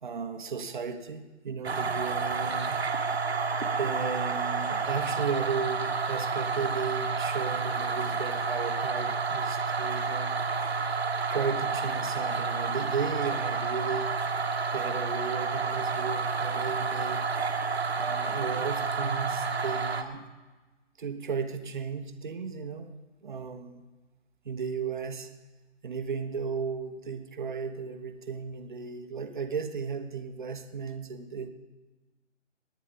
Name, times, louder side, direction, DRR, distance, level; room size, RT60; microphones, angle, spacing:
voice 1, 0.0-2.8 3.8-10.5 11.3-14.1 14.7-17.3 18.0-20.3 21.0-22.9 23.2-23.8 24.4-25.3 25.8-31.5, right 5 dB, 40° right, 8 dB, 1.2 m, -35 dB
sound 1, 1.6-20.0, right 4 dB, 60° right, 1.4 m, -30 dB
20.5 x 9.7 x 5.2 m, 1.2 s
figure-of-eight pair, 155°, 36 cm